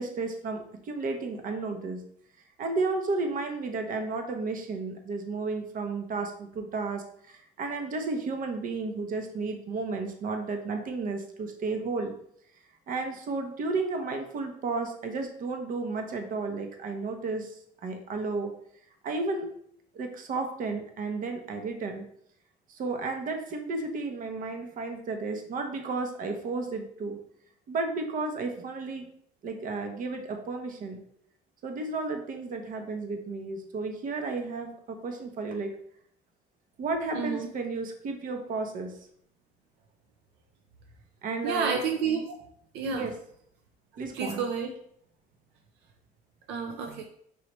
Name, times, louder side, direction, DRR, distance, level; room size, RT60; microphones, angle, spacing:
voice 1, 0.0-2.0 2.6-12.1 12.9-17.6 17.8-18.5 19.0-19.5 19.9-22.0 22.7-27.2 27.7-29.0 29.4-31.0 31.6-35.7 36.8-38.9 41.2-41.8 42.9-43.1 44.0-44.4, right 3 dB, 55° right, 5 dB, 0.8 m, -33 dB
voice 2, 37.1-37.5 41.4-42.4 42.7-43.1 44.1-44.7 46.5-47.0, right 5 dB, 85° right, 3 dB, 0.5 m, -30 dB
4.7 x 3.0 x 3.0 m, 0.67 s
cardioid pair, 110°, 17 cm